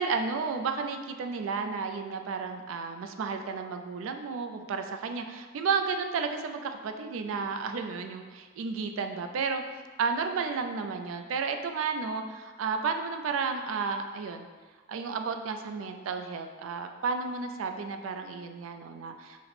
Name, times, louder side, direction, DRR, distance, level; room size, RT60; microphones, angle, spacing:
voice 1, 0.0-9.6 10.0-14.5 14.9-19.4, right 5 dB, 85° right, 6 dB, 0.3 m, -32 dB
4.1 x 2.0 x 4.1 m, 1.5 s
head